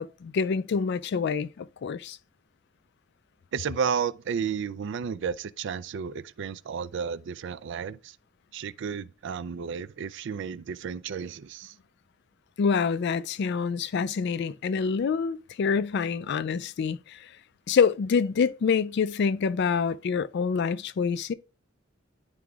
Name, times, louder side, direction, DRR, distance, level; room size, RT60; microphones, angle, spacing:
voice 1, 0.0-2.2 12.6-17.0 17.7-21.3, left 5 dB, 60° left, 0.4 m, -26 dB
voice 2, 3.5-8.2 8.5-11.7, right 6 dB, 65° right, 0.4 m, -32 dB
11.0 x 4.8 x 2.3 m
head